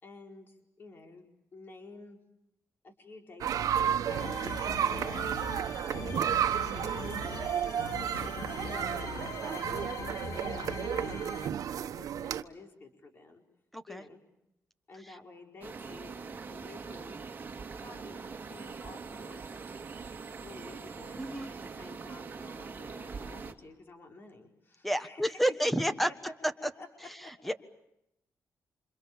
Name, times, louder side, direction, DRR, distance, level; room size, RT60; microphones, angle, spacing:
voice 1, 0.0-2.2 2.8-5.2 5.9-6.3 6.6-7.6 8.1-11.4 11.8-13.4 13.9-14.2 14.9-17.2 17.7-19.5 20.3-25.9 26.2-26.9 27.2-27.3, left 3 dB, 40° left, 4 dB, 4.6 m, -51 dB
sound 1, 3.4-12.4, right 9 dB, 80° right, 1.2 m, -32 dB
sound 2, 4.1-11.5, left 5 dB, 75° left, 2.8 m, -41 dB
voice 2, 13.7-14.0 21.2-21.5 24.8-26.1 27.4-27.5, equal, ahead, 11 dB, 1.5 m, -29 dB
sound 3, 15.6-23.5, right 5 dB, 30° right, 2.5 m, -43 dB
28.5 x 27.0 x 7.2 m, 0.83 s
wide cardioid pair, 160°, 6 cm